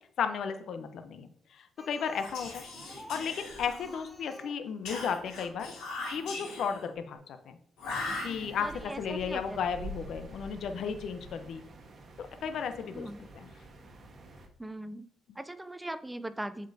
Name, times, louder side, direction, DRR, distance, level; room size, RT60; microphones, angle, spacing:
voice 1, 0.2-1.3 1.5-2.6 3.1-5.7 6.1-7.6 8.2-8.7 9.0-11.6 12.2-13.5, left 6 dB, 70° left, 8 dB, 0.6 m, -34 dB
Speech, 1.8-5.3 6.3-6.4 6.8-6.9 7.1-7.2, equal, 5° left, 1.1 m, -51 dB
Whispering, 2.1-4.1 4.9-6.9 7.8-8.8, left 2 dB, 90° left, 2.5 m, -40 dB
sound 1, 7.8-14.5, right 1 dB, 50° right, 1.2 m, -48 dB
voice 2, 8.6-9.6 12.9-13.2 14.6-16.7, right 1 dB, 10° right, 13 dB, 0.4 m, -40 dB
7.5 x 5.2 x 2.7 m, 0.65 s
cardioid pair, 90°, 0 cm